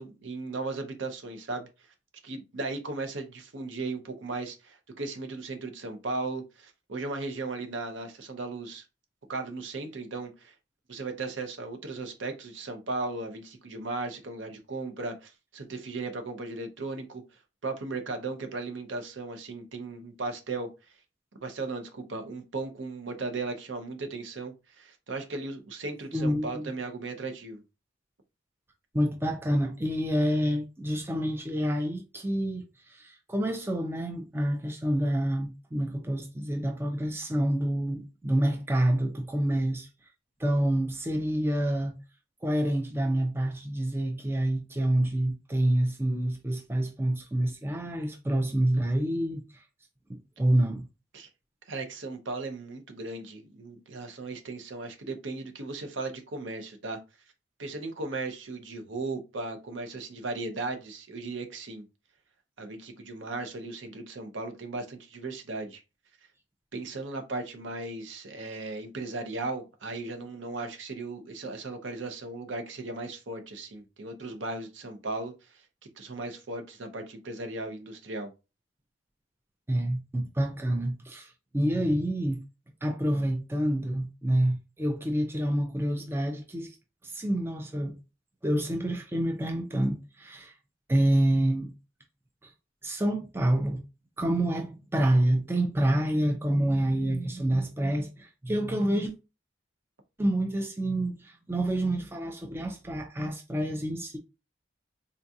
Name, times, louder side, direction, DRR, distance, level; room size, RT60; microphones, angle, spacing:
voice 1, 0.0-1.7 2.2-8.8 9.3-10.5 10.9-17.2 17.6-20.7 21.4-27.6 51.1-51.3 51.7-57.0 57.6-61.8 62.6-65.8 66.7-75.6 76.0-78.3, right 3 dB, 70° right, 0.7 m, -36 dB
voice 2, 26.1-26.7 28.9-39.9 40.4-42.0 42.4-49.6 50.1-50.8 79.7-82.4 82.8-86.8 87.0-88.0 88.4-90.5 90.9-91.7 92.4-92.5 92.8-93.8 94.2-99.1 100.2-104.2, right 1 dB, 10° right, 0.4 m, -27 dB
3.8 x 2.3 x 2.7 m
head